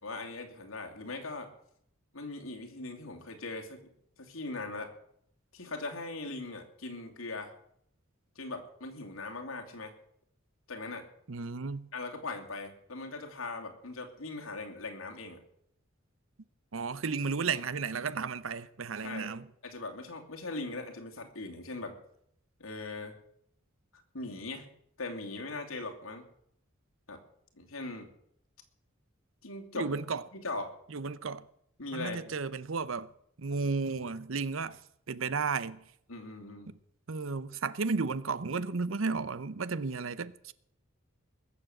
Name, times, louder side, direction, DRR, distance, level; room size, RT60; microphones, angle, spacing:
voice 1, 0.0-1.5 2.1-3.9 4.2-4.9 5.5-7.5 8.4-9.9 10.7-11.1 11.9-15.4 19.0-19.3 19.6-22.0 22.6-23.1 24.1-24.7 25.0-26.2 27.1-27.2 27.6-28.1 29.4-29.9 30.3-30.8 31.8-32.3 36.1-36.7, left 3 dB, 85° left, 2.8 m, -40 dB
voice 2, 11.3-11.9 16.7-19.5 29.7-30.2 30.9-31.4 31.9-33.1 33.4-34.8 35.1-35.8 36.7-36.8 37.1-40.5, right 4 dB, 70° right, 0.8 m, -33 dB
21.0 x 7.4 x 7.8 m
head